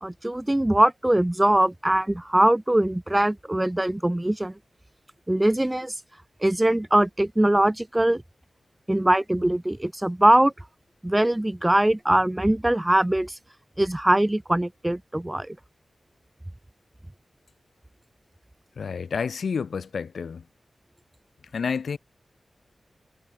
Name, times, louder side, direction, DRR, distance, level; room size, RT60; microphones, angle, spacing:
voice 1, 0.0-4.5 5.3-5.9 6.4-8.2 8.9-10.5 11.0-13.3 13.8-15.6, right 1 dB, 15° right, 0.8 m, -22 dB
voice 2, 18.8-20.4 21.5-22.0, left 6 dB, 85° left, 6.7 m, -29 dB
cardioid pair, 65°, 0 cm